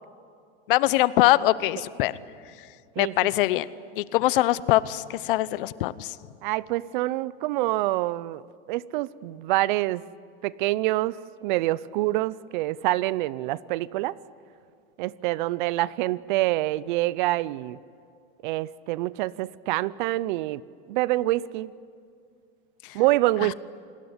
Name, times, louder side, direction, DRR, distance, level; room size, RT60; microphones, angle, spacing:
voice 1, 0.7-2.2 3.0-3.7 4.0-6.1, left 16 dB, 60° left, 17 dB, 0.9 m, -22 dB
voice 2, 3.0-3.3 6.4-8.4 8.7-10.0 10.4-11.2 11.4-14.2 15.0-17.8 18.4-20.6 20.9-21.7 22.9-23.5, right 17 dB, 55° right, 21 dB, 0.6 m, -26 dB
28.0 x 19.5 x 9.7 m, 2.3 s
supercardioid pair, 150°, 29 cm